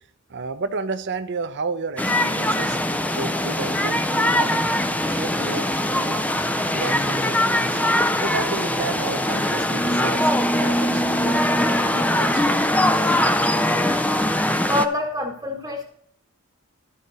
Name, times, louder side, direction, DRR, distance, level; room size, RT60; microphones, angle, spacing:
voice 1, 0.3-2.8 3.1-5.7 5.9-6.3 6.7-7.8 8.2-13.1, right 4 dB, 55° right, 9 dB, 0.7 m, -33 dB
sound 1, 2.0-14.9, left 1 dB, 5° left, 0.4 m, -21 dB
voice 2, 14.7-15.8, left 1 dB, 15° right, 0 dB, 1.1 m, -25 dB
13.0 x 5.0 x 4.0 m, 0.67 s
head